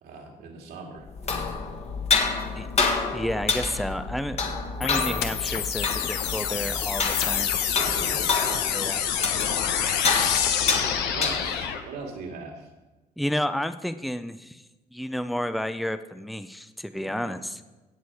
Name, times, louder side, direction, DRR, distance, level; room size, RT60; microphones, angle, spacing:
voice 1, 0.0-1.6 7.7-8.6 10.8-12.7 17.0-17.4, right 4 dB, 75° right, 1 dB, 2.3 m, -40 dB
sound 1, 1.1-11.8, left 4 dB, 40° left, 1.5 m, -28 dB
voice 2, 3.1-4.4 4.8-7.5 8.7-9.0 13.2-14.6 14.9-17.6, equal, ahead, 11 dB, 0.5 m, -31 dB
sound 2, 4.8-11.8, left 8 dB, 90° left, 1.1 m, -27 dB
17.0 x 6.2 x 4.8 m, 1.1 s
cardioid pair, 110°, 17 cm